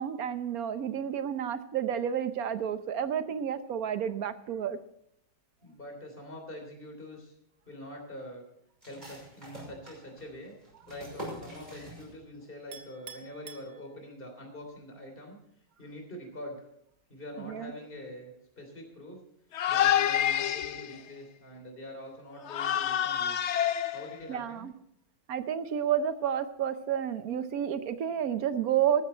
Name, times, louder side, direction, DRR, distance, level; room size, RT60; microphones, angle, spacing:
voice 1, 0.0-4.8 17.4-17.7 24.3-24.7 25.3-29.0, right 9 dB, 60° right, 11 dB, 1.1 m, -30 dB
voice 2, 5.6-7.3 7.7-8.4 8.8-10.5 10.9-15.4 15.8-16.7 17.1-19.2 19.7-23.4 23.9-24.7, left 1 dB, 30° left, 3 dB, 3.5 m, -44 dB
sound 1, 8.8-12.5 12.7-12.8 13.3-13.7, equal, 20° right, 6.1 m, -45 dB
Chink clink, 12.7-14.4, right 6 dB, 40° right, 1.3 m, -49 dB
sound 2, 19.5-21.0 22.5-24.3, left 10 dB, 90° left, 0.6 m, -27 dB
14.0 x 13.0 x 4.4 m, 0.76 s
omnidirectional pair, 2.0 m